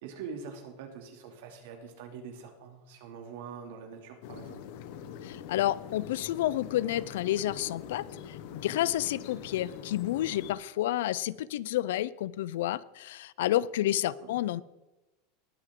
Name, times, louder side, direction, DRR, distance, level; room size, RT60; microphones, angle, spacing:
voice 1, 0.0-4.6 14.2-14.4, right 6 dB, 65° right, 3 dB, 2.6 m, -44 dB
sound 1, 4.2-10.5, left 8 dB, 50° left, 0.9 m, -44 dB
voice 2, 5.2-14.6, left 13 dB, 80° left, 20 dB, 0.4 m, -30 dB
20.0 x 6.7 x 3.7 m, 1.0 s
supercardioid pair, 180°, 0 cm